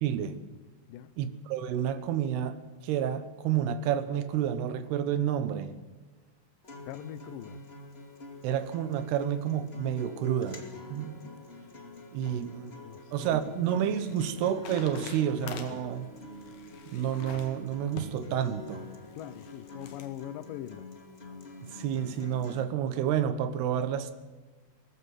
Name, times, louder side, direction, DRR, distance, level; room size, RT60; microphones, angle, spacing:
voice 1, 0.0-0.4 1.2-5.8 8.4-10.6 10.9-11.2 12.1-12.7 13.1-16.1 16.9-18.9 21.6-24.1, right 9 dB, 90° right, 3.2 m, -30 dB
Acoustic guitar, 6.6-22.6, left 2 dB, 20° left, 1.8 m, -47 dB
voice 2, 6.9-7.6 12.3-12.4 12.8-13.6 14.1-14.2 19.2-20.9, left 12 dB, 75° left, 2.2 m, -42 dB
Opening Book, 13.1-20.1, left 5 dB, 55° left, 3.1 m, -47 dB
19.0 x 15.0 x 9.1 m
omnidirectional pair, 4.5 m